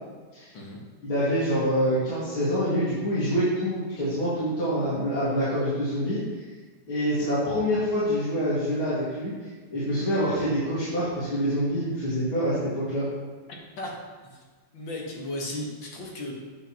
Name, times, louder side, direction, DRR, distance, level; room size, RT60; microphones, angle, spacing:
voice 1, 1.0-6.2 6.9-9.3 9.7-13.1, equal, 85° left, -11 dB, 3.0 m, -26 dB
voice 2, 14.7-16.3, left 1 dB, 65° left, -2 dB, 2.2 m, -35 dB
9.0 x 8.3 x 3.0 m, 1.4 s
omnidirectional pair, 2.2 m